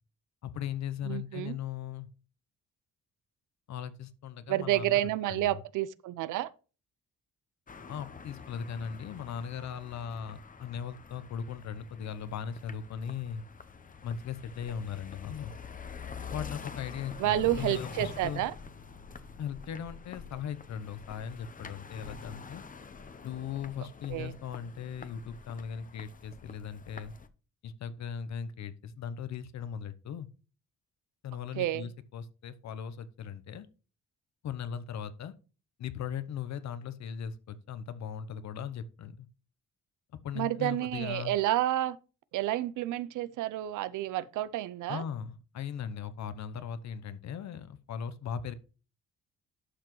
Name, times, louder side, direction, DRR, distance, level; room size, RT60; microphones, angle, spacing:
voice 1, 0.4-2.1 3.7-5.0 5.3-5.6 7.9-13.4 14.0-15.5 16.3-18.5 19.4-22.6 23.2-27.1 27.6-30.3 31.2-33.7 34.4-35.3 35.8-39.3 40.2-41.4 44.9-48.5, left 8 dB, 65° left, 0.9 m, -38 dB
voice 2, 1.0-1.6 4.5-6.5 17.2-18.5 24.1-24.3 31.6-31.9 40.3-42.0 42.3-45.0, right 14 dB, 80° right, 0.6 m, -30 dB
sound 1, 7.7-27.3, left 5 dB, 25° left, 0.8 m, -47 dB
11.5 x 6.0 x 3.2 m
cardioid pair, 90°, 30 cm